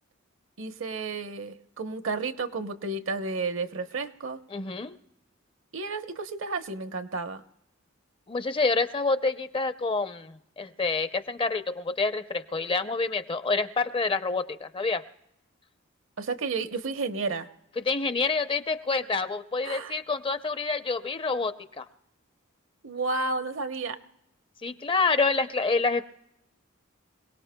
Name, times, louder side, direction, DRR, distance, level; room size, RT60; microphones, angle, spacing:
voice 1, 0.6-4.4 5.7-7.4 16.2-17.5 19.6-20.0 22.8-24.0, right 3 dB, 70° right, 9 dB, 0.9 m, -32 dB
voice 2, 4.5-5.0 8.3-15.0 17.8-21.8 24.6-26.0, left 3 dB, 25° left, 11 dB, 0.5 m, -27 dB
27.0 x 18.0 x 2.2 m, 0.82 s
head